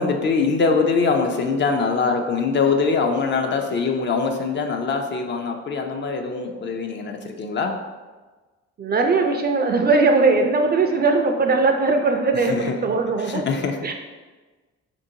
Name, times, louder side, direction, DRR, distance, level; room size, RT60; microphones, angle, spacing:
voice 1, 0.0-7.8 12.4-12.8 13.3-13.9, left 4 dB, 40° left, 4 dB, 0.4 m, -23 dB
voice 2, 8.8-13.5 13.8-13.9, right 3 dB, 35° right, 4 dB, 0.4 m, -19 dB
4.3 x 2.6 x 2.7 m, 1.3 s
cardioid pair, 90°, 30 cm